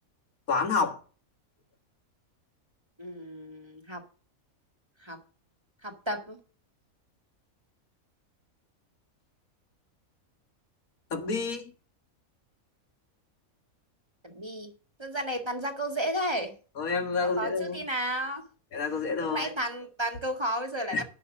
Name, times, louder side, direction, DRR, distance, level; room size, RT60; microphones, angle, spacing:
voice 1, 0.5-1.0 11.1-11.7 16.8-17.8 18.7-19.5 20.9-21.0, left 4 dB, 80° left, 2.0 m, -29 dB
voice 2, 3.0-4.0 5.0-5.2 5.8-6.4 14.2-14.7 15.0-16.5 17.2-18.4 19.2-21.0, right 1 dB, 20° right, 1.8 m, -33 dB
11.0 x 6.2 x 6.6 m
omnidirectional pair, 1.5 m